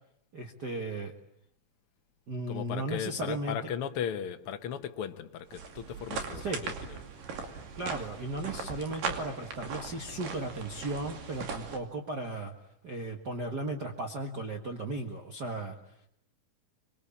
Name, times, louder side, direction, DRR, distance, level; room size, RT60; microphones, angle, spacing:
voice 1, 0.3-1.1 2.3-3.6 6.4-6.6 7.7-12.5 12.8-15.7, right 2 dB, 40° right, 1.8 m, -36 dB
voice 2, 2.5-7.0, left 8 dB, 60° left, 1.6 m, -37 dB
sound 1, 5.5-11.8, right 5 dB, 85° right, 4.3 m, -39 dB
25.5 x 23.5 x 8.6 m
omnidirectional pair, 3.8 m